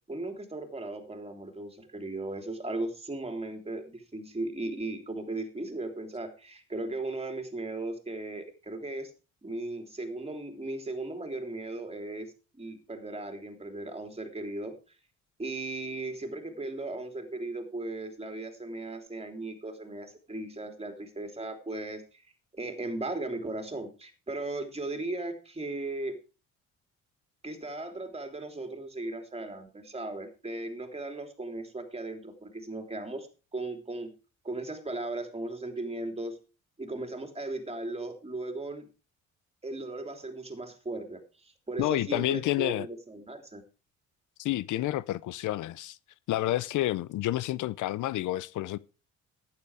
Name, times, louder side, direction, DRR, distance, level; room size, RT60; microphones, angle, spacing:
voice 1, 0.1-9.1 9.4-15.0 15.4-22.2 22.5-26.2 27.4-33.3 33.5-34.1 34.4-36.4 36.8-38.9 39.6-43.6, right 2 dB, 20° right, 3.1 m, -37 dB
voice 2, 41.8-42.9 44.4-46.0 46.3-48.8, left 15 dB, 80° left, 0.6 m, -29 dB
12.0 x 9.8 x 4.8 m
cardioid pair, 90°, 30 cm